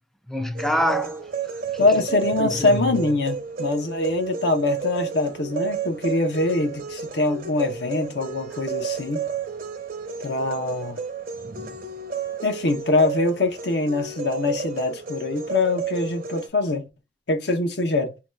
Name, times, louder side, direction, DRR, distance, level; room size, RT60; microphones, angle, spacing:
voice 1, 0.3-1.8 2.4-2.8, equal, ahead, 0.3 m, -27 dB
sound 1, 0.6-16.5, right 6 dB, 55° right, 0.6 m, -32 dB
voice 2, 1.8-9.3 10.2-11.0 12.4-16.9 17.3-18.1, left 2 dB, 70° left, 0.8 m, -23 dB
2.8 x 2.3 x 3.0 m
head